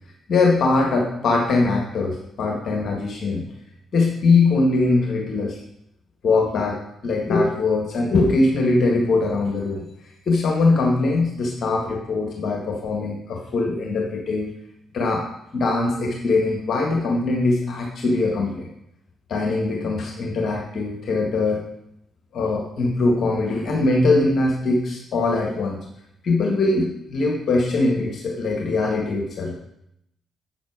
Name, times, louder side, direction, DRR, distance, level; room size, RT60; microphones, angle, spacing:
voice 1, 0.3-3.4 3.9-5.6 6.2-9.9 10.3-14.5 14.9-15.2 15.5-18.7 19.3-21.6 22.3-25.8 26.2-29.5, left 3 dB, 55° left, 0 dB, 1.7 m, -21 dB
8.1 x 7.1 x 4.8 m, 0.78 s
figure-of-eight pair, 40°, 0 cm